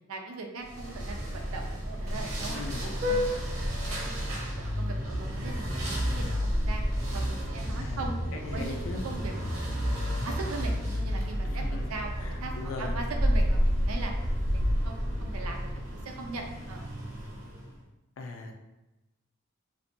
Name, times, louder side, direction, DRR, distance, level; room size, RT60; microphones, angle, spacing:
voice 1, 0.1-3.4 3.8-6.8 7.1-8.2 8.5-9.9 10.2-12.5 12.8-14.1 14.5-16.9, right 3 dB, 90° right, 2 dB, 0.4 m, -40 dB
Vehicle horn car horn honking, 0.6-16.0, equal, 35° right, 0.4 m, -33 dB
sound 1, 0.6-17.8, equal, 70° right, 0.8 m, -33 dB
voice 2, 2.5-2.9 7.7-9.0 11.4-11.9 12.2-13.0 18.2-18.5, left 3 dB, 70° left, 3 dB, 0.4 m, -39 dB
sound 2, 8.0-12.8, right 5 dB, 85° left, 0.8 m, -54 dB
2.6 x 2.2 x 2.6 m, 1.0 s
head